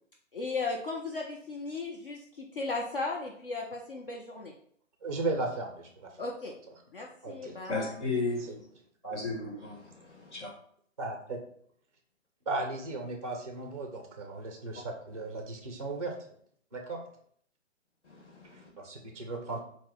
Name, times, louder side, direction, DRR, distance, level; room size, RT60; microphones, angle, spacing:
voice 1, 0.3-4.5 6.2-6.5 6.9-8.0, left 3 dB, 45° left, -1 dB, 0.5 m, -36 dB
voice 2, 5.0-6.1 7.2-7.6 8.5-8.6 9.0-9.2 11.0-11.4 12.5-16.1 16.7-17.0 18.8-19.6, right 2 dB, 30° right, 2 dB, 0.4 m, -36 dB
voice 3, 7.7-8.5 9.1-9.8 18.1-18.7, left 3 dB, 60° left, -1 dB, 1.3 m, -33 dB
4.5 x 2.1 x 3.6 m, 0.62 s
figure-of-eight pair, 140°, 39 cm